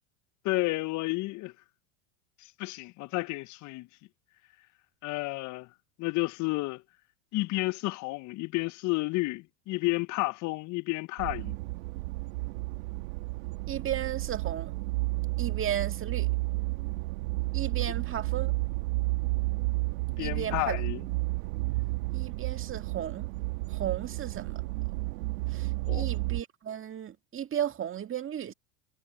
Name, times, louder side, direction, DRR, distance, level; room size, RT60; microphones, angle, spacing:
voice 1, 0.4-1.5 2.6-3.9 5.0-5.7 6.0-6.8 7.3-11.6 20.2-21.0 25.9-26.1, left 23 dB, 45° left, 0.6 m, -31 dB
sound 1, 11.2-26.4, right 23 dB, 75° right, 1.3 m, -32 dB
voice 2, 13.7-14.7 15.4-16.3 17.5-18.5 20.2-20.8 22.1-23.3 23.7-24.6 25.5-28.5, right 10 dB, 30° right, 1.9 m, -35 dB
supercardioid pair, 100°, 41 cm